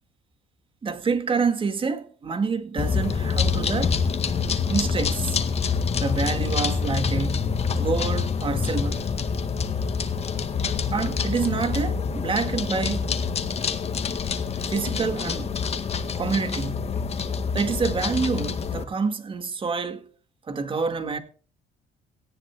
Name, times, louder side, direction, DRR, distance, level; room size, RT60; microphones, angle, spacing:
voice 1, 0.8-4.0 4.7-5.4 6.0-9.0 10.9-13.2 14.7-15.6 16.2-17.0 17.5-20.0 20.5-21.2, right 5 dB, 30° right, 2.0 m, -27 dB
sound 1, 2.8-18.8, left 5 dB, 40° left, 1.8 m, -26 dB
18.0 x 14.0 x 2.3 m
cardioid pair, 110°, 17 cm